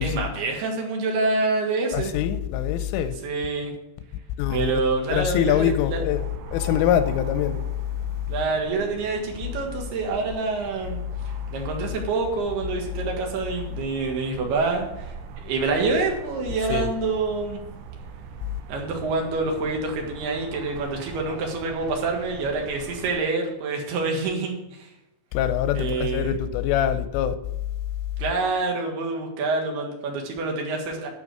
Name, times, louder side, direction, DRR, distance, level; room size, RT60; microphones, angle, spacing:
voice 1, 0.0-2.1 3.2-3.7 4.5-6.0 8.3-11.0 11.5-15.1 15.4-17.6 18.7-24.9 25.7-26.3 28.2-31.1, right 3 dB, 60° right, 3.4 m, -27 dB
voice 2, 1.9-3.2 4.4-7.6 16.7-16.9 25.3-27.4, left 10 dB, 90° left, 3.2 m, -24 dB
sound 1, 6.1-23.2, right 5 dB, 80° right, 2.4 m, -41 dB
11.0 x 5.9 x 6.8 m
omnidirectional pair, 5.7 m